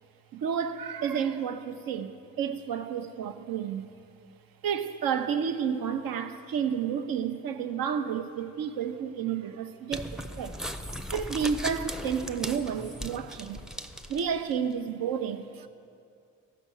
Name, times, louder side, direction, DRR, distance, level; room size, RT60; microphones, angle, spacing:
voice 1, 0.3-3.9 4.6-10.6 11.1-13.6 14.1-15.7, right 7 dB, 65° right, 0.7 m, -31 dB
sound 1, 9.9-14.5, equal, ahead, 0.6 m, -38 dB
14.0 x 5.7 x 6.3 m
hypercardioid pair, 40°, 38 cm